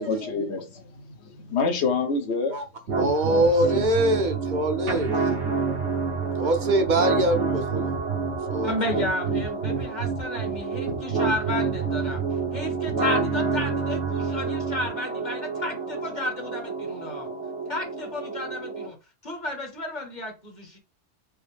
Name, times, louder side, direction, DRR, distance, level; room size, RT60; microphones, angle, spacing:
voice 1, 0.0-2.6 3.4-3.8, left 4 dB, 70° left, 1.1 m, -28 dB
sound 1, 2.9-18.9, right 4 dB, 75° right, 1.3 m, -28 dB
voice 2, 3.0-5.2 6.4-7.9 8.5-8.7, right 1 dB, 50° right, 0.7 m, -23 dB
voice 3, 8.6-12.2 12.5-17.3 17.7-19.0 19.2-20.8, left 1 dB, 40° left, 1.0 m, -32 dB
4.8 x 2.0 x 3.2 m
omnidirectional pair, 1.2 m